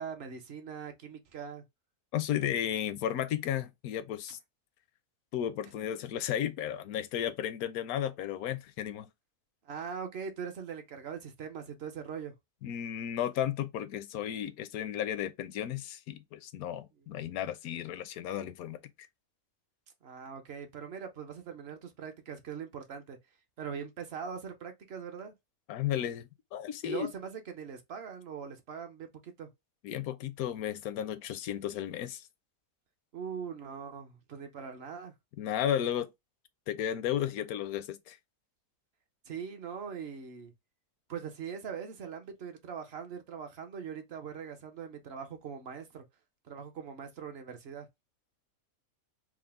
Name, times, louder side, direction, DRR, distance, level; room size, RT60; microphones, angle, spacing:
voice 1, 0.0-1.6 9.6-12.3 17.0-17.4 20.0-23.2 23.6-25.3 26.8-29.5 33.1-35.1 39.3-40.5 41.1-46.0 46.4-47.9, right 6 dB, 55° right, 0.8 m, -41 dB
voice 2, 2.1-4.4 5.3-9.1 12.6-18.8 25.7-27.1 29.8-32.3 35.4-36.1 36.7-38.2, left 10 dB, 80° left, 1.0 m, -34 dB
4.9 x 2.0 x 3.4 m
omnidirectional pair, 1.5 m